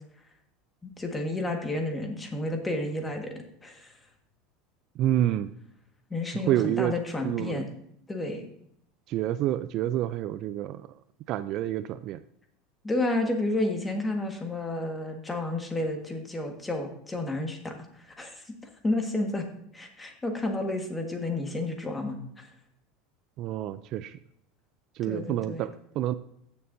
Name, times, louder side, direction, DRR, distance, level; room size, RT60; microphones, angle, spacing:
voice 1, 0.8-3.3 3.6-3.9 6.1-7.6 8.1-8.5 12.8-18.4 18.8-19.5 19.7-22.5 25.1-25.6, left 2 dB, 15° left, 3 dB, 1.7 m, -31 dB
voice 2, 4.9-5.5 6.3-7.0 7.2-7.6 9.1-11.0 11.3-12.2 23.4-24.2 24.9-26.1, right 12 dB, 50° right, 14 dB, 0.4 m, -28 dB
15.0 x 6.8 x 2.7 m, 0.70 s
supercardioid pair, 130°, 0 cm